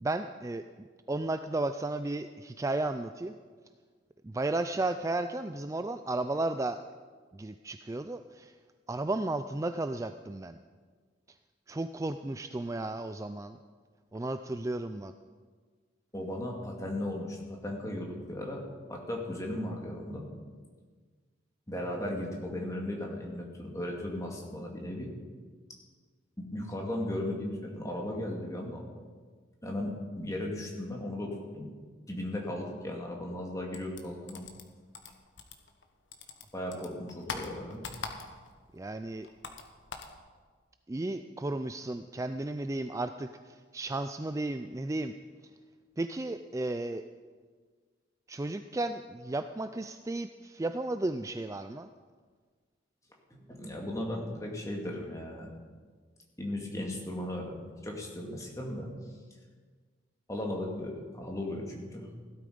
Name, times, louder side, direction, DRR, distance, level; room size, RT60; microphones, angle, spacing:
voice 1, 0.0-3.4 4.2-6.8 7.3-8.5 8.9-10.6 11.7-13.6 14.1-15.1 36.7-36.9 38.7-39.3 40.9-45.1 46.0-47.0 48.3-51.9, right 2 dB, 15° right, 9 dB, 0.3 m, -34 dB
voice 2, 16.1-18.6 18.9-20.2 21.7-25.1 26.4-28.8 29.6-31.7 32.1-34.4 36.5-37.8 53.3-55.5 56.4-58.9 60.3-62.1, left 1 dB, 15° left, -1 dB, 2.3 m, -36 dB
sound 1, 33.7-35.9 36.1-38.6 38.9-40.2, left 4 dB, 80° left, 1.4 m, -42 dB
16.5 x 12.5 x 5.2 m, 1.5 s
head